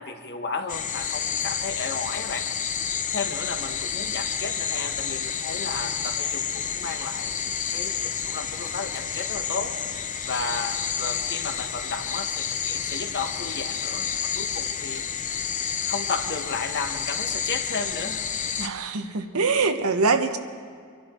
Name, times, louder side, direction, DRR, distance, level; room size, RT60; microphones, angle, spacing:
voice 1, 0.0-2.5 3.1-9.7 10.3-15.3 15.9-18.2, left 4 dB, 50° left, 5 dB, 1.3 m, -33 dB
sound 1, 0.7-18.7, left 7 dB, 35° left, 0.7 m, -30 dB
voice 2, 18.6-20.4, right 4 dB, 90° right, 7 dB, 1.1 m, -23 dB
25.0 x 11.5 x 4.4 m, 2.1 s
head